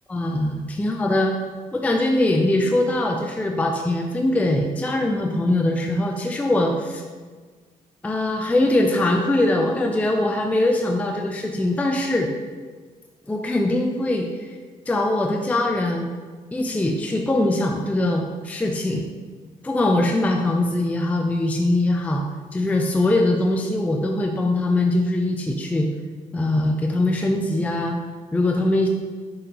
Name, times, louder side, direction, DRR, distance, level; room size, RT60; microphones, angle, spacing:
voice 1, 0.1-1.4 1.7-7.0 8.0-12.3 13.3-14.6 14.9-16.1 16.5-19.1 19.6-22.2 22.5-25.9 26.3-28.0 28.3-28.9, left 1 dB, 10° left, 2 dB, 0.3 m, -22 dB
4.7 x 3.9 x 2.8 m, 1.5 s
cardioid pair, 85°, 15 cm